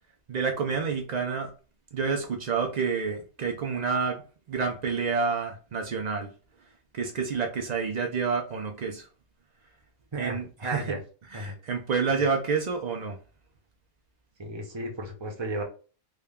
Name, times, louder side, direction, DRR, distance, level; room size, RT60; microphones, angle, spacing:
voice 1, 0.3-1.5 1.9-6.3 6.9-9.1 10.2-11.0 11.3-13.2, right 5 dB, 85° right, 2 dB, 0.3 m, -29 dB
voice 2, 10.1-11.0 11.3-11.5 14.4-15.6, right 1 dB, 30° right, 2 dB, 0.5 m, -34 dB
3.7 x 2.2 x 3.5 m, 0.36 s
omnidirectional pair, 1.4 m